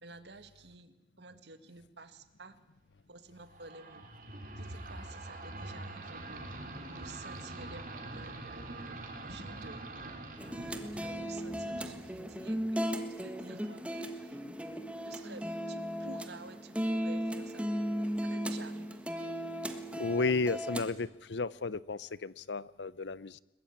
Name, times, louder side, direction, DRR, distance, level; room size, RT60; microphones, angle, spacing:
voice 1, 0.0-2.6 3.1-4.1 4.6-10.3 10.6-14.4 15.1-17.7 18.2-19.0, right 3 dB, 75° right, 10 dB, 1.9 m, -51 dB
sound 1, 3.5-12.8, right 2 dB, 50° right, 3.8 m, -44 dB
sound 2, 10.4-20.9, equal, 5° right, 1.5 m, -36 dB
voice 2, 20.0-23.4, left 3 dB, 85° left, 19 dB, 0.7 m, -33 dB
22.0 x 21.0 x 8.7 m, 0.95 s
head